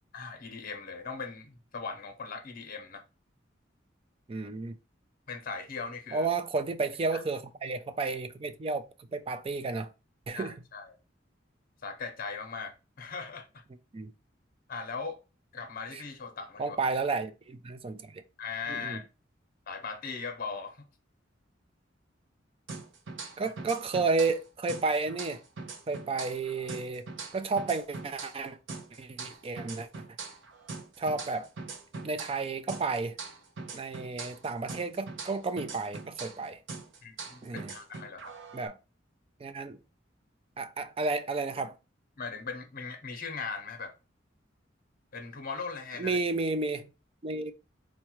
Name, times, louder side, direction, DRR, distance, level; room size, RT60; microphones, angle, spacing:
voice 1, 0.1-3.0 5.3-6.3 7.1-7.2 10.3-11.0 11.8-13.6 14.7-15.2 15.5-16.8 18.4-19.0 19.7-20.9 23.4-23.5 37.0-38.3 42.2-44.0 45.1-46.2, left 5 dB, 50° left, 0.7 m, -39 dB
voice 2, 4.3-4.8 6.1-9.9 10.3-10.5 13.9-14.1 15.9-16.0 16.6-18.2 18.7-19.0 23.4-25.4 25.9-27.1 27.3-28.6 29.0-29.9 31.0-31.5 32.0-33.2 33.7-36.6 37.4-37.7 38.5-38.7 39.4-39.8 40.6-41.7 46.0-46.9 47.2-47.5, right 3 dB, 30° right, 0.4 m, -32 dB
sound 1, 22.7-24.4 24.7-28.4 28.7-32.4 32.7-36.4 36.7-38.7, right 4 dB, 80° right, 0.7 m, -42 dB
4.6 x 2.2 x 2.9 m
head